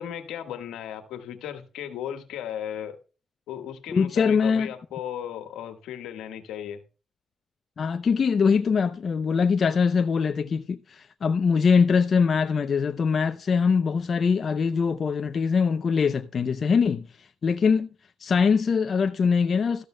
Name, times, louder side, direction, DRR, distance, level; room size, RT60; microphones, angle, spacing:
voice 1, 0.0-3.0 3.5-6.8, left 10 dB, 85° left, 1.5 m, -36 dB
voice 2, 3.9-4.7 7.8-17.9 18.2-19.8, left 5 dB, 50° left, 0.6 m, -23 dB
13.5 x 12.5 x 2.2 m
cardioid pair, 75°, 0 cm